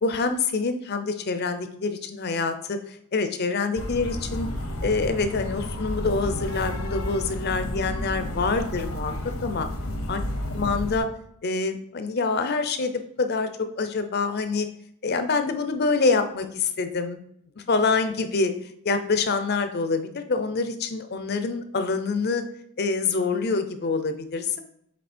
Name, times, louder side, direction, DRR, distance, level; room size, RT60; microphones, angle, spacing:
voice 1, 0.0-4.5 4.8-9.1 9.4-9.7 10.1-10.2 10.5-11.1 11.4-14.7 15.0-17.2 17.6-18.5 18.8-22.4 22.8-24.6, left 4 dB, 45° left, 9 dB, 0.6 m, -26 dB
sound 1, 3.8-11.0, left 1 dB, 80° left, 1.1 m, -31 dB
7.5 x 3.2 x 4.3 m, 0.73 s
head